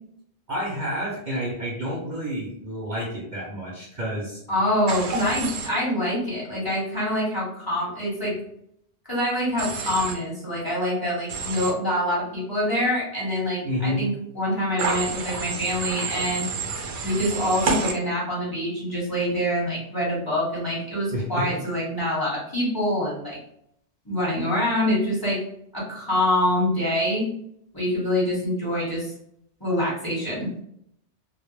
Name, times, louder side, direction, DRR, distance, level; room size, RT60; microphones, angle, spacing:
voice 1, 0.5-4.4 13.6-14.0 21.1-21.5, equal, 50° right, -4 dB, 0.6 m, -29 dB
voice 2, 4.5-8.4 9.1-16.5 17.0-23.4 24.0-25.4 25.7-27.3 27.7-29.1 29.6-30.5, left 1 dB, 20° left, -7 dB, 1.0 m, -25 dB
Human voice / Train, 4.9-5.7 9.6-10.1 11.3-11.7 14.8-17.9, right 4 dB, 80° right, 0.9 m, -29 dB
2.2 x 2.0 x 3.0 m, 0.71 s
omnidirectional pair, 1.1 m